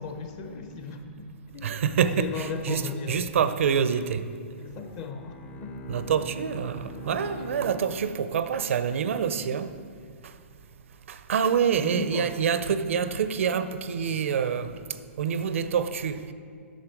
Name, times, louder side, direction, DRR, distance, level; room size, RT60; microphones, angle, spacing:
voice 1, 0.0-3.5 4.6-5.8 11.8-12.3 12.7-12.8, left 4 dB, 40° left, 0.9 m, -37 dB
voice 2, 1.6-2.8 3.1-4.2 5.9-9.7 11.3-14.7 15.2-16.2, right 7 dB, 75° right, 0.5 m, -26 dB
Bowed string instrument, 4.7-8.8, left 1 dB, 25° left, 0.5 m, -43 dB
9.0 x 6.4 x 4.6 m
hypercardioid pair, 135°, 7 cm